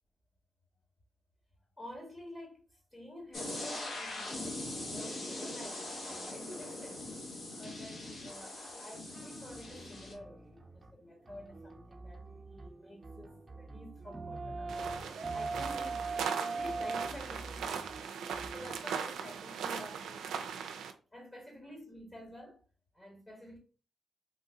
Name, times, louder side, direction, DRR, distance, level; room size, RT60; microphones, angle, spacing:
voice 1, 1.8-7.2 7.6-12.2 12.5-18.1 18.5-20.5 21.1-22.6 22.9-23.6, equal, 30° left, 1.5 m, -49 dB
sound 1, 3.3-10.1, left 2 dB, 60° left, 1.6 m, -41 dB
sound 2, 9.1-18.8, right 3 dB, 25° right, 0.8 m, -42 dB
sound 3, 14.7-20.9, right 7 dB, 85° right, 0.4 m, -39 dB
3.8 x 2.6 x 2.6 m
supercardioid pair, 50°, 0 cm